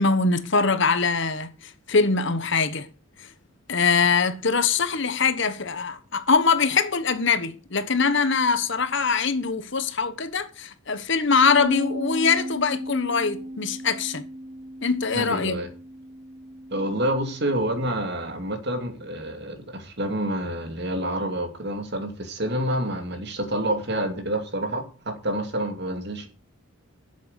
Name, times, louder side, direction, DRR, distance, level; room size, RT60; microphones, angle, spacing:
voice 1, 0.0-2.9 3.2-3.3 3.7-14.3 14.8-15.6, left 5 dB, 55° left, 1.2 m, -23 dB
Bass guitar, 11.6-17.8, equal, 30° right, 1.1 m, -36 dB
voice 2, 15.1-15.7 16.7-26.3, right 1 dB, 50° right, 2.5 m, -28 dB
11.5 x 7.7 x 6.8 m
head